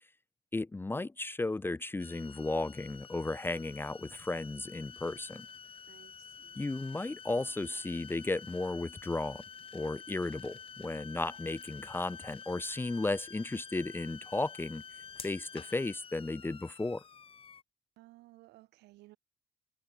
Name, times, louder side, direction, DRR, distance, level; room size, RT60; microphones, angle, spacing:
voice 1, 0.5-5.5 6.6-9.4 9.7-14.8 15.2-17.0, left 2 dB, 15° left, 0.7 m, -34 dB
sound 1, 2.0-17.6, left 6 dB, 35° left, 1.5 m, -49 dB
voice 2, 5.9-6.7 18.0-19.2, right 19 dB, 85° right, 3.0 m, -58 dB
cardioid pair, 110°, 17 cm